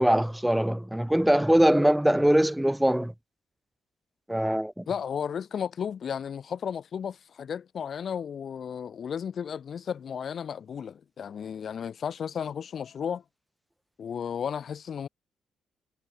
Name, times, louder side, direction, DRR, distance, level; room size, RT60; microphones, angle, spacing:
voice 1, 0.0-3.1 4.3-4.8, right 1 dB, 5° right, 2.5 m, -22 dB
voice 2, 4.9-13.2 14.0-15.1, left 7 dB, 50° left, 5.6 m, -34 dB
figure-of-eight pair, 40°, 0 cm